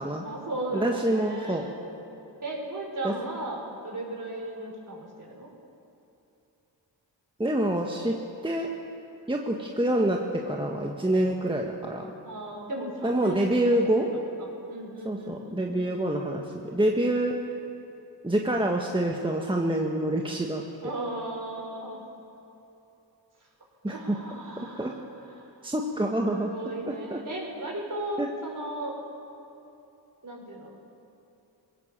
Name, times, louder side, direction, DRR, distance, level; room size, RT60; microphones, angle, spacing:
voice 1, 0.0-1.7 2.4-5.5 12.2-15.6 20.8-22.0 23.9-25.5 26.2-29.0 30.2-30.7, right 1 dB, 45° right, 0 dB, 5.4 m, -36 dB
voice 2, 0.7-1.7 3.0-3.1 7.4-8.2 8.4-8.7 9.3-12.1 13.0-14.1 15.0-17.3 18.2-20.6 23.8-24.2 24.6-24.9 25.6-26.5 27.1-27.2 28.2-28.3, right 1 dB, 10° right, 1 dB, 1.5 m, -26 dB
20.5 x 17.0 x 7.5 m, 2.9 s
cardioid pair, 65°, 44 cm